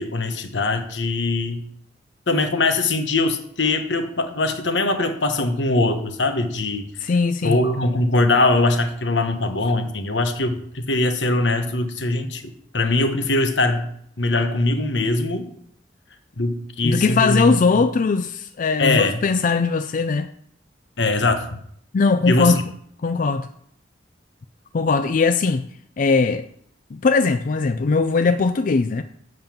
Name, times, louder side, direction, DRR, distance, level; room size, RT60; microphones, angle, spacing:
voice 1, 0.0-1.7 2.3-6.9 7.4-13.9 14.2-15.5 16.4-17.9 18.8-19.2 21.0-21.6 22.2-22.5, left 2 dB, 90° left, 1.2 m, -21 dB
voice 2, 7.0-7.6 16.8-20.3 21.9-22.6 23.0-23.5 24.7-25.7 26.0-26.4 26.9-29.0, left 4 dB, 50° left, 0.4 m, -20 dB
7.8 x 5.5 x 7.2 m
head